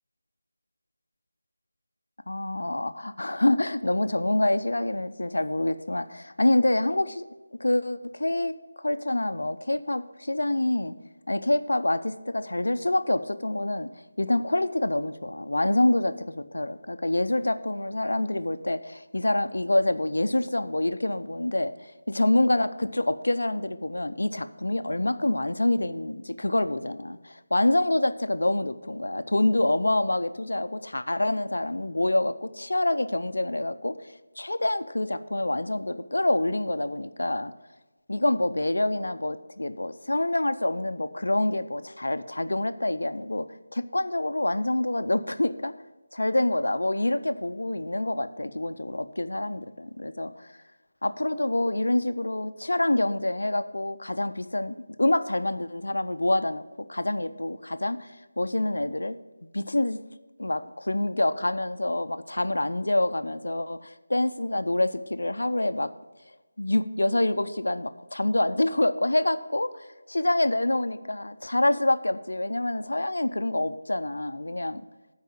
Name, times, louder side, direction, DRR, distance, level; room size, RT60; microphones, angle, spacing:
voice 1, 2.3-7.3 7.6-10.9 11.3-13.9 14.2-37.5 38.1-43.5 43.7-45.7 46.1-50.5 51.0-56.6 56.9-59.2 59.4-60.0 60.4-65.9 66.6-74.8, left 1 dB, 85° left, 12 dB, 0.5 m, -26 dB
9.1 x 4.8 x 7.4 m, 1.2 s
figure-of-eight pair, 165°, 0 cm